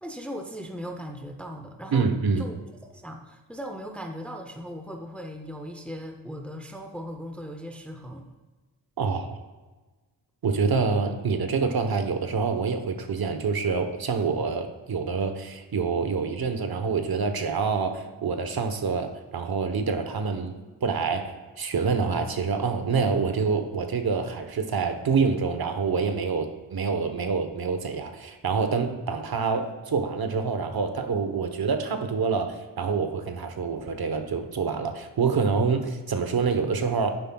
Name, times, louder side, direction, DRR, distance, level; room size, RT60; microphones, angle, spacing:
voice 1, 0.0-2.1 2.4-2.6 2.8-8.3, equal, 5° left, 4 dB, 0.6 m, -38 dB
voice 2, 1.9-2.5 9.0-9.4 10.4-20.5 20.8-21.3 21.6-37.1, right 5 dB, 50° right, 7 dB, 1.0 m, -26 dB
11.0 x 9.8 x 2.3 m, 1.2 s
wide cardioid pair, 140°, 46 cm